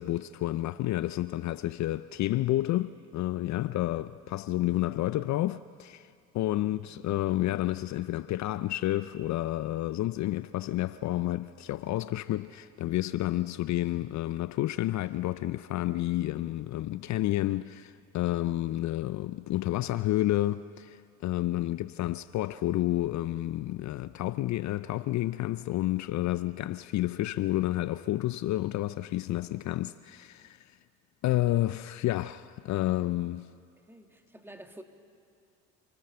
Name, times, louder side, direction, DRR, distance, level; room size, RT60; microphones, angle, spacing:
voice 1, 0.0-30.8 31.2-33.5, left 15 dB, 55° left, 0.5 m, -30 dB
voice 2, 33.9-34.8, right 1 dB, 5° right, 1.9 m, -49 dB
28.0 x 15.0 x 6.8 m
supercardioid pair, 75°, 35 cm